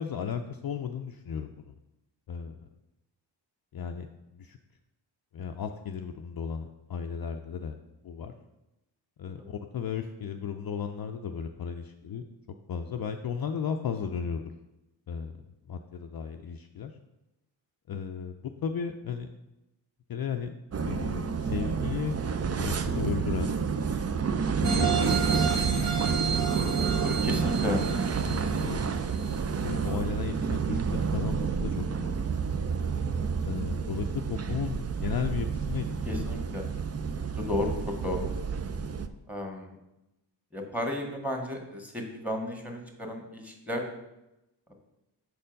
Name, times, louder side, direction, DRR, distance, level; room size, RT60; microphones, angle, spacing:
voice 1, 0.0-1.7 2.3-2.5 3.7-4.6 5.3-7.8 8.0-8.3 9.2-12.2 12.7-14.5 15.1-15.3 15.7-16.9 17.9-19.3 20.1-20.5 20.8-22.2 22.5-23.6 24.6-25.9 28.3-28.9 29.6-32.1 33.4-36.2, left 7 dB, 50° left, 5 dB, 0.5 m, -35 dB
sound 1, 20.7-39.1, right 5 dB, 35° right, 0.5 m, -29 dB
sound 2, 24.6-29.4 29.8-29.9, right 6 dB, 60° right, 1.6 m, -32 dB
voice 2, 26.8-27.8 36.1-36.6 37.4-37.7 38.0-38.3 39.3-39.7 40.5-43.8, left 1 dB, 5° right, 1 dB, 1.7 m, -33 dB
6.6 x 4.3 x 5.2 m, 0.94 s
cardioid pair, 65°, 48 cm